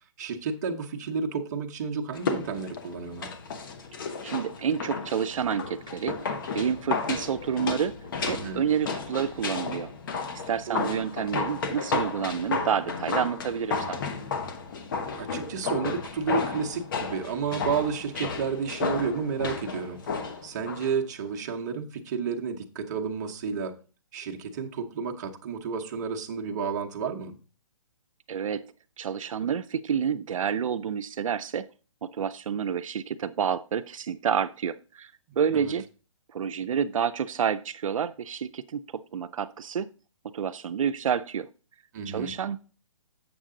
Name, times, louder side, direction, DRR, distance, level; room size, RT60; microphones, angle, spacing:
voice 1, 0.2-3.3 8.2-8.7 10.7-11.0 15.2-20.0 20.4-23.8 24.1-27.4 35.3-35.7 41.9-42.4, right 5 dB, 35° right, 2 dB, 1.0 m, -31 dB
sound 1, 2.1-20.9 21.2-21.3, left 4 dB, 40° left, 1.0 m, -33 dB
voice 2, 4.2-6.2 6.5-8.0 8.3-9.9 10.5-14.0 28.3-28.6 29.0-31.7 32.0-35.9 36.3-38.8 39.1-39.9 40.3-41.5 42.1-42.6, right 7 dB, 80° right, 10 dB, 0.5 m, -29 dB
7.8 x 6.6 x 3.7 m, 0.35 s
hypercardioid pair, 165°, 17 cm